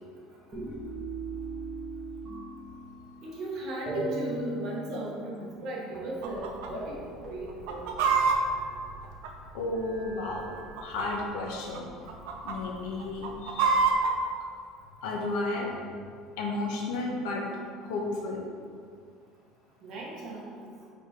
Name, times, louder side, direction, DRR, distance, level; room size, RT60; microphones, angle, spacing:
sound 1, 0.5-3.5 3.9-5.7 5.9-6.1 6.4-6.6 6.8-7.0 7.2-9.0 9.7-11.3 12.0-12.9, right 2 dB, 15° right, 1.5 m, -40 dB
voice 1, 3.2-7.0 7.3-7.5 19.8-20.7, right 1 dB, 50° right, -3 dB, 1.5 m, -36 dB
Chicken rooster, 6.2-6.7 7.0-7.1 7.5-9.8 10.5-11.2 11.5-11.8 12.1-12.6 13.0-14.1, right 4 dB, 80° right, 0.7 m, -26 dB
voice 2, 9.5-10.5 10.8-11.9 12.4-13.7 15.0-15.7 16.4-17.4 17.8-18.4, left 2 dB, 80° left, 0 dB, 1.2 m, -32 dB
5.1 x 4.2 x 5.1 m, 2.2 s
cardioid pair, 155°, 0 cm